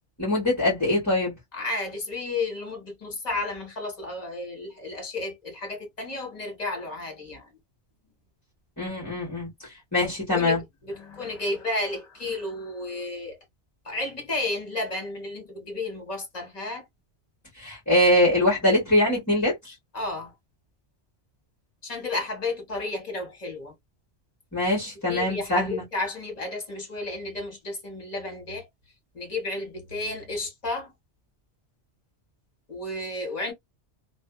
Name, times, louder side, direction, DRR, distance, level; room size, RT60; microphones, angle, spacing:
voice 1, 0.2-1.3 8.8-9.5 9.9-10.6 17.6-19.7 24.5-25.8, left 1 dB, 15° left, 1.2 m, -23 dB
voice 2, 1.5-7.5 10.3-13.4 13.8-16.9 19.9-20.3 21.8-23.7 25.1-28.7 29.1-30.9 32.7-33.5, left 2 dB, 35° left, 1.3 m, -32 dB
2.6 x 2.4 x 2.2 m
omnidirectional pair, 1.1 m